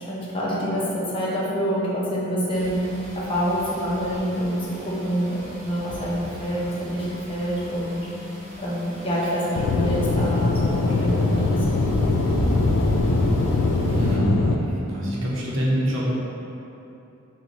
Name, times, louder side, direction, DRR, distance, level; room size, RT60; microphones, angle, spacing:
voice 1, 0.0-2.8 3.1-8.1 8.6-11.6, equal, 25° left, -6 dB, 0.6 m, -26 dB
sound 1, 2.5-14.2, equal, 15° right, 1.1 m, -34 dB
Aircraft / Engine, 9.6-14.6, left 3 dB, 65° left, 0.3 m, -22 dB
voice 2, 13.9-16.1, equal, 70° right, -6 dB, 0.8 m, -25 dB
4.4 x 2.2 x 3.9 m, 2.9 s
head